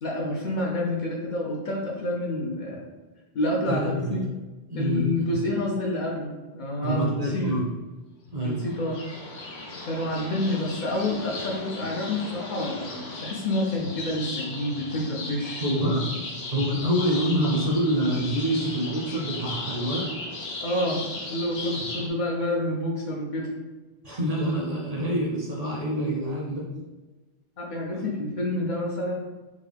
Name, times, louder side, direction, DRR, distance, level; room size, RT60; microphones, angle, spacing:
voice 1, 0.0-2.8 3.3-4.2 4.8-7.5 8.4-9.0 9.8-16.0 20.6-23.5 27.6-29.2, left 1 dB, 55° left, -2 dB, 0.6 m, -28 dB
voice 2, 3.7-4.2 4.7-5.4 6.8-7.6 8.3-8.6 11.4-11.5 15.6-16.1 16.5-20.1 24.0-26.7, equal, 45° right, -3 dB, 0.5 m, -26 dB
sound 1, 8.6-22.1, left 2 dB, 75° left, 0.9 m, -36 dB
3.6 x 2.2 x 3.3 m, 1.2 s
omnidirectional pair, 1.1 m